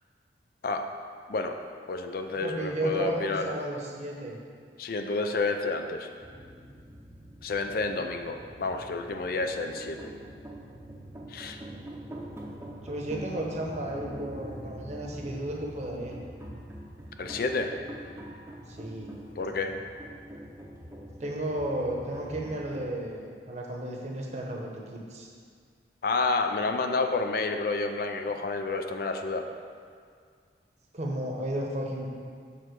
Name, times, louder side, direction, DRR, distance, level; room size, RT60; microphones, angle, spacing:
voice 1, 1.9-3.5 4.8-6.1 7.4-10.1 11.3-11.6 17.2-17.7 19.4-19.7 26.0-29.5, left 3 dB, 55° left, 6 dB, 0.4 m, -29 dB
voice 2, 2.4-4.4 12.8-16.1 18.7-19.1 21.2-25.3 30.9-32.1, right 1 dB, 40° right, -1 dB, 0.9 m, -33 dB
sound 1, 6.2-22.9, right 1 dB, 15° right, 0.7 m, -44 dB
6.9 x 3.7 x 6.2 m, 2.1 s
head